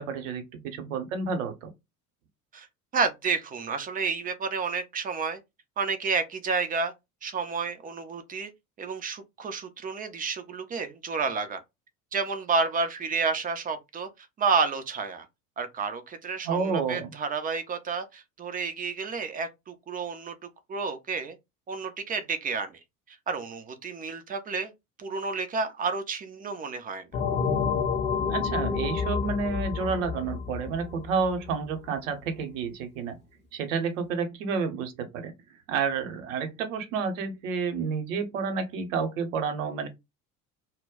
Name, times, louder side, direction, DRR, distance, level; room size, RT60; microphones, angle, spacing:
voice 1, 0.0-1.7 16.4-17.1 28.3-33.2 33.5-35.3 35.7-39.9, right 5 dB, 65° right, 0.9 m, -30 dB
voice 2, 2.9-5.4 5.8-6.9 7.2-8.5 8.8-11.6 12.1-15.3 15.6-20.3 20.7-21.4 21.7-22.8 23.1-24.7 25.0-27.1, right 5 dB, 20° right, 0.4 m, -30 dB
sound 1, 27.1-31.5, left 6 dB, 25° left, 0.6 m, -29 dB
2.2 x 2.1 x 3.6 m
figure-of-eight pair, 65°, 43 cm